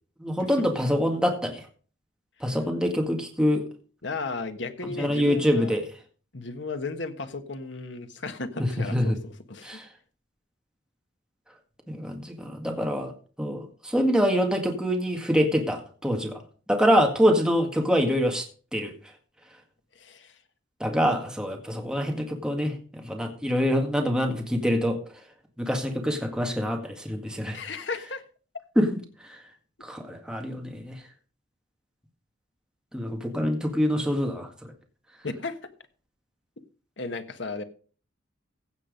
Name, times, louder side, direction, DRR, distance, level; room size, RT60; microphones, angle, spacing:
voice 1, 0.2-1.7 2.4-3.6 4.8-5.9 8.6-9.2 9.6-9.9 11.9-13.1 13.4-16.4 16.7-18.5 18.7-18.9 20.8-25.0 25.6-27.6 28.8-29.4 29.8-31.0 32.9-34.7, equal, 5° right, 3 dB, 1.8 m, -25 dB
voice 2, 4.0-5.7 6.3-9.8 20.0-20.3 27.5-28.2 35.2-35.6 37.0-37.6, left 3 dB, 65° left, 9 dB, 1.4 m, -35 dB
16.0 x 6.2 x 5.2 m, 0.40 s
head